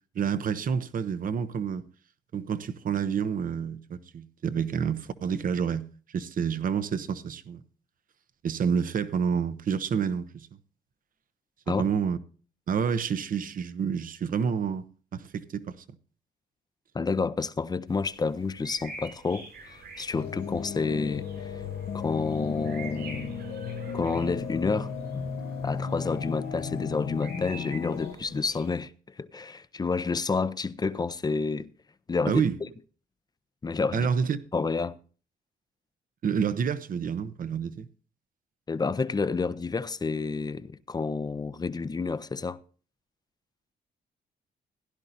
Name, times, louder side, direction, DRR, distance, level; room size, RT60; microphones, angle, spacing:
voice 1, 0.1-1.9 2.3-7.6 8.4-10.5 11.7-12.2 12.7-14.8 15.1-15.8 32.3-32.6 33.9-34.4 36.2-37.9, right 7 dB, 55° right, 0.8 m, -28 dB
voice 2, 16.9-21.5 21.9-23.4 23.9-25.3 25.6-28.9 29.2-31.7 32.1-32.4 33.6-34.1 34.5-35.0 38.7-42.6, left 4 dB, 25° left, 0.6 m, -29 dB
sound 1, 17.9-28.8, right 3 dB, 85° right, 6.6 m, -47 dB
sound 2, 20.1-28.1, left 6 dB, 80° left, 1.0 m, -35 dB
16.5 x 10.5 x 2.6 m
cardioid pair, 80°, 17 cm